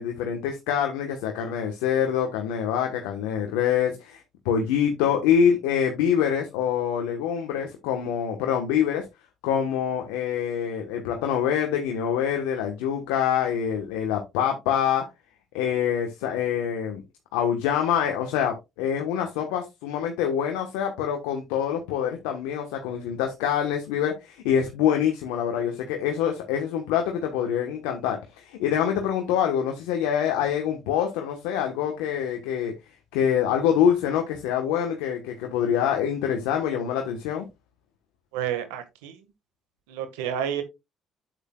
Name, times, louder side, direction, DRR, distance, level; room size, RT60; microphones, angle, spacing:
voice 1, 0.0-9.0 9.4-15.0 15.5-17.0 17.3-32.7 33.1-37.4, left 8 dB, 85° left, 1.2 m, -25 dB
voice 2, 38.3-39.1 39.9-40.6, right 9 dB, 90° right, 1.6 m, -30 dB
8.3 x 8.1 x 2.3 m
supercardioid pair, 65°, 0 cm